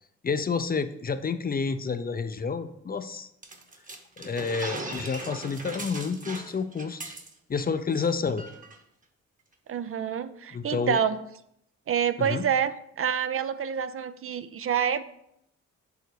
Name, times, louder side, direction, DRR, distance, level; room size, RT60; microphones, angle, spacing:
voice 1, 0.2-3.3 4.2-7.1 7.5-8.4 10.5-11.0 12.2-12.4, left 5 dB, 30° left, 10 dB, 0.5 m, -29 dB
sound 1, 3.4-7.6 7.9-8.1 8.4-8.8, right 2 dB, 25° right, 1.1 m, -39 dB
voice 2, 9.7-11.2 11.9-15.0, right 8 dB, 50° right, 13 dB, 0.4 m, -27 dB
6.9 x 3.9 x 6.4 m, 0.76 s
cardioid pair, 90°, 30 cm